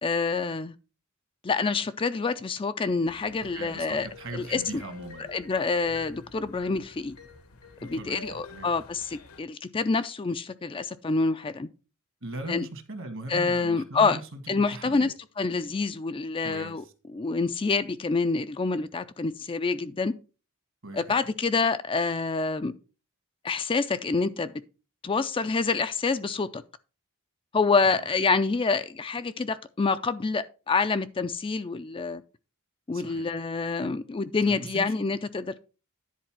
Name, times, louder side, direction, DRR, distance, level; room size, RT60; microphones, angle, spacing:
voice 1, 0.0-0.7 1.4-4.1 4.5-4.6 5.3-7.2 7.8-11.7 12.5-12.6 13.3-14.2 14.5-16.8 17.1-20.1 20.9-22.7 23.4-24.5 25.0-26.6 27.5-32.2 32.9-35.7, left 4 dB, 25° left, 0.4 m, -27 dB
sound 1, 3.1-9.4, left 3 dB, 75° left, 1.2 m, -48 dB
voice 2, 3.5-5.3 7.8-8.7 12.2-15.1 16.4-16.9 20.8-21.2 27.8-28.1 32.9-33.3 34.4-34.9, right 2 dB, 60° right, 1.6 m, -40 dB
10.5 x 4.0 x 5.9 m
head